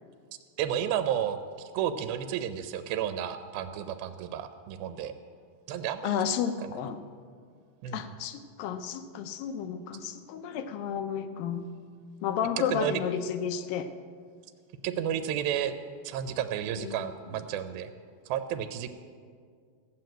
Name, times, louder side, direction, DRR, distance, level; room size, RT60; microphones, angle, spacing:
voice 1, 0.6-1.4 1.7-5.1 5.7-6.4 7.8-8.0 12.7-13.0 14.8-15.7 16.0-17.9 18.3-18.9, right 10 dB, 80° right, 10 dB, 2.4 m, -31 dB
voice 2, 6.0-7.0 7.9-11.7 12.2-13.9 16.7-17.4, left 8 dB, 75° left, 9 dB, 2.4 m, -32 dB
15.5 x 7.7 x 8.9 m, 2.1 s
omnidirectional pair, 4.3 m